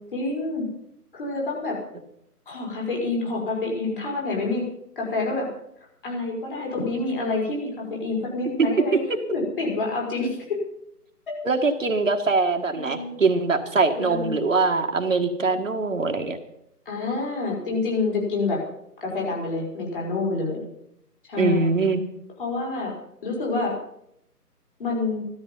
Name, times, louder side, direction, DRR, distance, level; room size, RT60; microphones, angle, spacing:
voice 1, 0.1-0.6 1.1-1.8 2.5-4.6 4.9-5.5 6.0-9.0 9.3-10.6 11.3-11.4 12.7-13.1 13.9-14.3 16.8-18.6 19.0-20.7 21.3-21.7 22.4-22.9 23.2-23.7 24.8-25.2, left 3 dB, 35° left, -2 dB, 5.2 m, -27 dB
voice 2, 11.4-16.4 21.4-22.0, right 3 dB, 55° right, 4 dB, 1.6 m, -22 dB
15.5 x 13.0 x 5.5 m, 0.77 s
figure-of-eight pair, 165°, 47 cm